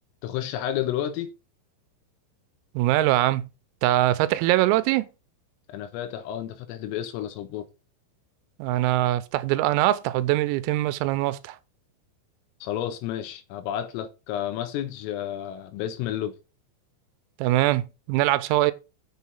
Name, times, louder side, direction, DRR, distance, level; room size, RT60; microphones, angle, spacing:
voice 1, 0.2-1.3 5.7-7.7 12.6-16.3, left 11 dB, 85° left, 3.8 m, -31 dB
voice 2, 2.8-3.5 3.8-5.1 8.6-11.6 17.4-18.7, right 16 dB, 90° right, 3.4 m, -22 dB
8.2 x 6.4 x 5.4 m
omnidirectional pair, 6.0 m